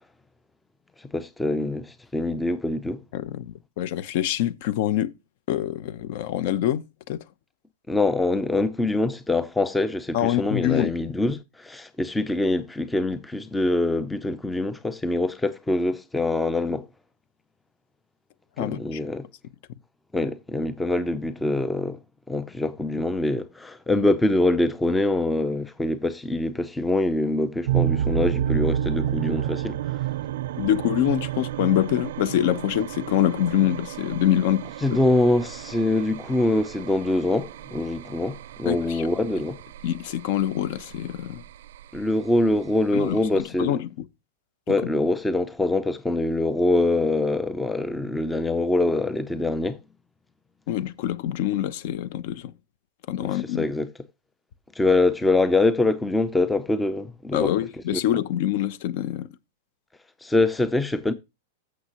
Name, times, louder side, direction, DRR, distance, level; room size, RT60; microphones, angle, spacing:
voice 1, 1.1-3.0 7.9-16.9 18.6-19.3 20.1-22.0 22.3-29.7 34.8-39.6 41.9-43.8 44.7-49.8 53.2-53.9 54.8-57.5 57.9-58.0 60.2-61.1, left 2 dB, 5° left, 0.5 m, -24 dB
voice 2, 3.1-5.1 5.5-7.2 10.1-11.0 18.6-19.0 30.6-34.6 34.9-35.0 38.7-39.1 39.8-41.4 42.9-44.1 44.7-44.8 50.7-52.5 53.1-53.6 57.3-59.3, left 12 dB, 50° left, 0.7 m, -25 dB
sound 1, 27.7-43.4, right 10 dB, 65° right, 0.5 m, -31 dB
14.5 x 6.3 x 2.9 m
supercardioid pair, 165°, 0 cm